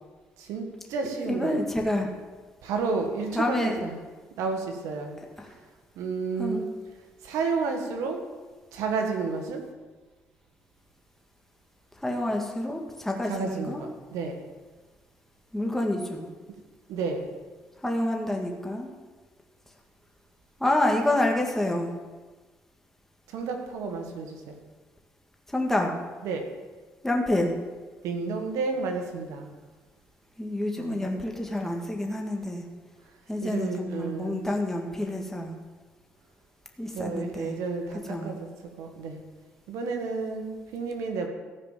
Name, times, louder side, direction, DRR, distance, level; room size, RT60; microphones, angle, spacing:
voice 1, 0.4-1.6 2.6-4.0 4.3-5.2 5.9-6.6 7.2-8.2 8.7-9.6 13.3-14.4 16.9-17.3 23.3-24.6 26.2-26.4 28.0-29.5 30.8-31.0 33.4-34.4 36.9-38.5 38.8-39.2 39.7-41.3, right 4 dB, 90° right, 4 dB, 1.6 m, -31 dB
voice 2, 1.3-2.1 3.4-3.8 5.4-5.6 6.4-6.7 12.0-13.8 15.5-16.3 17.8-18.9 20.6-21.9 25.5-26.0 27.0-27.5 30.4-32.7 33.3-35.5 36.8-37.5 38.1-38.3, left 1 dB, 5° left, 1 dB, 1.8 m, -28 dB
14.5 x 5.0 x 7.4 m, 1.3 s
cardioid pair, 80°, 5 cm